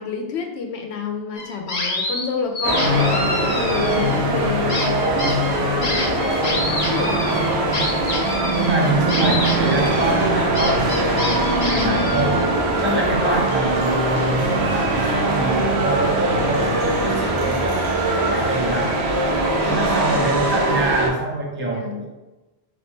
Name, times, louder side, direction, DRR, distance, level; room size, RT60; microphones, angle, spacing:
voice 1, 0.0-3.1 3.4-7.2 11.5-12.0 19.6-20.2 21.6-22.0, left 5 dB, 85° left, 3 dB, 0.9 m, -29 dB
sound 1, 1.4-2.3 2.6-4.3 4.7-12.5, left 2 dB, 40° left, 0.8 m, -28 dB
sound 2, 2.6-21.1, right 1 dB, 80° right, 1.0 m, -21 dB
voice 2, 8.5-12.4 12.8-19.0 19.7-22.1, right 2 dB, 15° right, -2 dB, 0.7 m, -25 dB
3.9 x 3.2 x 3.5 m, 1.1 s
omnidirectional pair, 1.1 m